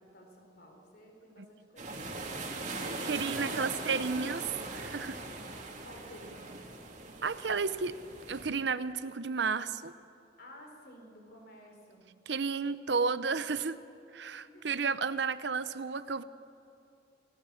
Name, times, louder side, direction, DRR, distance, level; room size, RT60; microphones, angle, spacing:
voice 1, 0.0-2.5 3.0-4.8 5.8-6.6 10.4-12.1 14.5-14.7, equal, 55° left, 2 dB, 4.5 m, -53 dB
sound 1, 1.8-8.4, right 2 dB, 40° right, 2.9 m, -40 dB
voice 2, 3.0-4.4 4.8-5.2 7.2-7.9 8.3-9.9 12.3-13.8 14.1-16.2, right 5 dB, 65° right, 14 dB, 0.7 m, -32 dB
28.5 x 18.0 x 7.1 m, 2.8 s
head